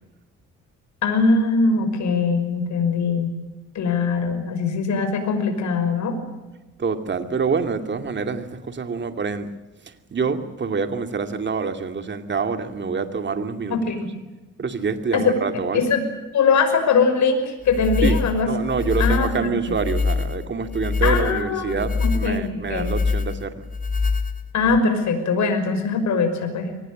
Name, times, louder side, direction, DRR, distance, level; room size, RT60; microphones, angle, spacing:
voice 1, 1.0-3.3 3.7-6.2 13.7-14.1 15.1-15.4 15.7-16.0 16.3-18.5 19.0-19.5 21.0-22.9 24.5-26.7, left 4 dB, 70° left, 6 dB, 5.8 m, -21 dB
voice 2, 6.8-9.5 10.1-13.8 14.6-15.9 18.0-23.6, right 5 dB, 40° right, 7 dB, 2.5 m, -26 dB
sound 1, 17.7-24.8, left 4 dB, 25° left, 2.0 m, -25 dB
24.0 x 19.0 x 8.9 m, 1.1 s
cardioid pair, 90°, 30 cm